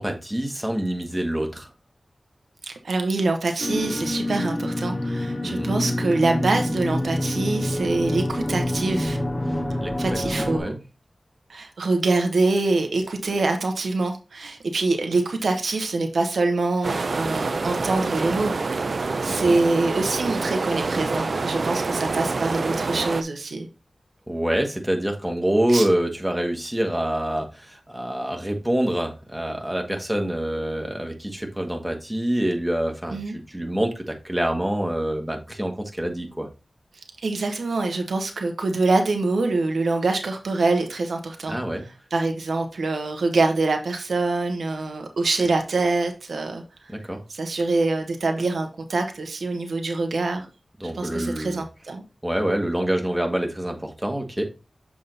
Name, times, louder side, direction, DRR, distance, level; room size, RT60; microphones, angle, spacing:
voice 1, 0.0-1.7 5.4-5.7 9.8-9.9 10.3-10.8 19.3-19.6 24.3-33.2 33.5-36.5 41.5-41.8 46.9-47.2 50.8-51.6 52.2-54.4, right 1 dB, 10° right, 1.6 m, -26 dB
voice 2, 2.6-9.2 10.0-10.7 11.5-18.8 19.2-23.7 25.7-25.9 33.1-33.4 37.2-41.6 42.1-46.6 47.3-50.5 50.8-52.0, right 3 dB, 90° right, 1.0 m, -25 dB
sound 1, 3.6-10.6, left 1 dB, 20° left, 1.6 m, -26 dB
sound 2, 16.8-23.2, right 3 dB, 70° right, 0.6 m, -27 dB
7.0 x 3.7 x 3.9 m
wide cardioid pair, 55°, 0 cm